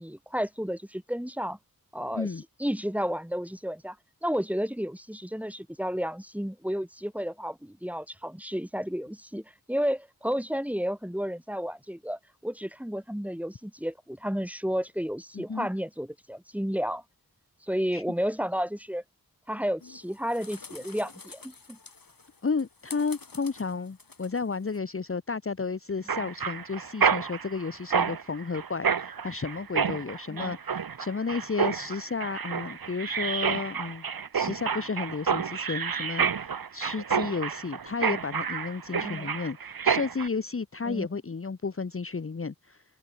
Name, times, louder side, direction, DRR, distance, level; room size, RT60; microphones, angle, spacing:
voice 1, 0.0-1.6 1.9-2.3 2.6-4.0 4.2-17.0 17.6-19.0 19.5-21.8 30.3-30.6 39.0-39.3 40.8-41.1, equal, 5° right, 4.2 m, -32 dB
voice 2, 2.1-2.4 15.3-15.7 17.9-18.0 22.4-34.0 34.3-42.8, left 4 dB, 35° left, 1.0 m, -32 dB
sound 1, 19.8-24.8, left 4 dB, 65° left, 5.9 m, -48 dB
Mechanisms, 26.1-40.3, right 6 dB, 75° right, 1.1 m, -29 dB
wide cardioid pair, 80°, 36 cm